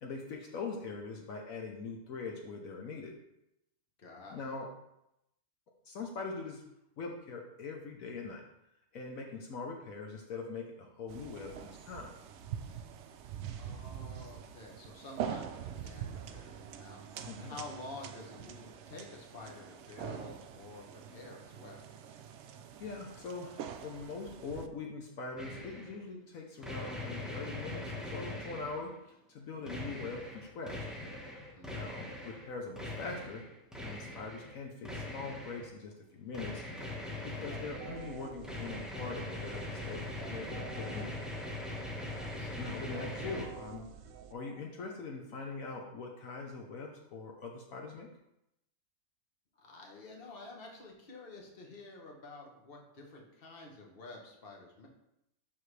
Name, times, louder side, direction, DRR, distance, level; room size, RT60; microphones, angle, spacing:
voice 1, 0.0-3.1 4.3-4.7 5.8-6.6 7.0-8.4 8.9-12.1 17.3-17.6 22.8-30.9 31.7-33.5 33.8-36.6 36.9-41.2 42.6-43.9 44.3-48.1, left 4 dB, 70° left, 1 dB, 1.2 m, -42 dB
voice 2, 4.0-4.4 13.6-17.0 17.4-21.8 31.5-32.0 42.1-42.8 49.6-54.9, left 2 dB, 40° left, 0 dB, 1.4 m, -50 dB
sound 1, 11.1-24.7, right 8 dB, 65° right, 0.7 m, -44 dB
sound 2, 25.4-26.0 26.6-29.0 29.7-32.5 32.8-34.6 34.8-35.7 36.3-43.4, left 2 dB, ahead, 1.1 m, -41 dB
sound 3, 37.5-45.2, right 8 dB, 85° right, 1.1 m, -50 dB
11.0 x 3.8 x 3.3 m, 0.84 s
omnidirectional pair, 1.5 m